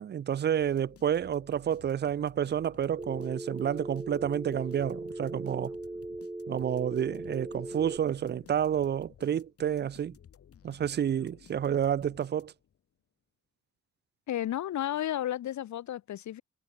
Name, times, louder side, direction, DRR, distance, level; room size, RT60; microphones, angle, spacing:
voice 1, 0.0-5.7 6.5-10.2 10.6-12.5, right 9 dB, 35° right, 0.5 m, -30 dB
sound 1, 0.6-12.8, left 8 dB, 50° left, 2.9 m, -56 dB
Telephone, 3.0-8.0, right 2 dB, 10° right, 1.6 m, -39 dB
voice 2, 14.3-16.4, left 12 dB, 70° left, 1.3 m, -32 dB
wide cardioid pair, 170°, 29 cm